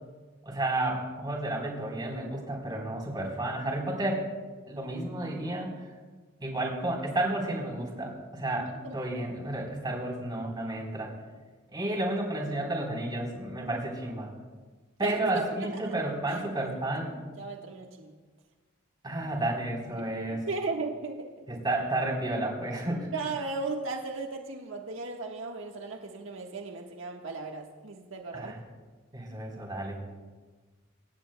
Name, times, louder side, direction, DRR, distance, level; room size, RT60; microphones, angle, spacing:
voice 1, 0.4-4.3 4.7-5.7 6.4-11.1 11.7-14.3 15.0-17.2 19.0-20.4 21.5-23.1 28.3-28.6 29.1-30.0, right 1 dB, 20° right, -1 dB, 3.7 m, -31 dB
voice 2, 15.0-15.3 15.6-15.7 16.3-16.4 17.4-18.1 20.0-21.3 23.1-28.5, right 3 dB, 85° right, 1 dB, 1.4 m, -36 dB
25.0 x 17.5 x 2.2 m, 1.4 s
head